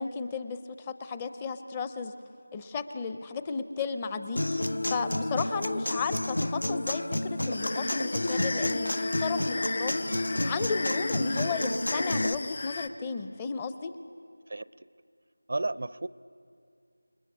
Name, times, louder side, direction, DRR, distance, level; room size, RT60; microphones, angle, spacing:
voice 1, 0.0-2.1 2.5-4.4 4.9-13.9, left 5 dB, 15° left, 10 dB, 0.6 m, -34 dB
Human voice / Acoustic guitar, 4.4-12.3, left 1 dB, 70° left, 0.6 m, -30 dB
sound 1, 7.5-12.9, left 3 dB, 45° left, 1.1 m, -36 dB
voice 2, 14.5-14.9 15.5-16.1, right 2 dB, 50° right, 17 dB, 0.5 m, -33 dB
28.5 x 21.0 x 8.2 m, 2.4 s
figure-of-eight pair, 170°, 0 cm